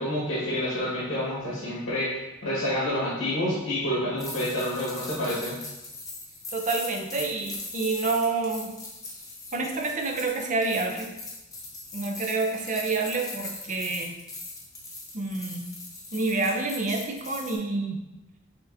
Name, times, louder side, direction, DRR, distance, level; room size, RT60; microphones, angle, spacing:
voice 1, 0.0-5.6, left 1 dB, 75° left, -7 dB, 1.4 m, -28 dB
sound 1, 4.2-17.6, left 2 dB, 20° left, 0.7 m, -40 dB
voice 2, 6.5-8.7 9.5-11.1 11.9-14.1 15.1-15.7 16.1-18.0, right 3 dB, 40° right, 2 dB, 0.5 m, -28 dB
6.2 x 2.8 x 2.6 m, 0.98 s
head